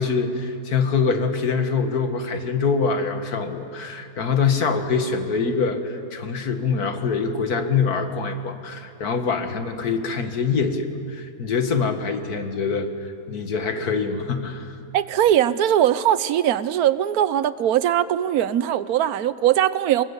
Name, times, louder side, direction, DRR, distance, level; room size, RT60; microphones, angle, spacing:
voice 1, 0.0-12.9 13.3-14.8, left 5 dB, 70° left, 6 dB, 2.1 m, -24 dB
voice 2, 14.9-20.0, right 11 dB, 75° right, 15 dB, 1.2 m, -20 dB
25.0 x 21.5 x 8.2 m, 2.5 s
omnidirectional pair, 1.7 m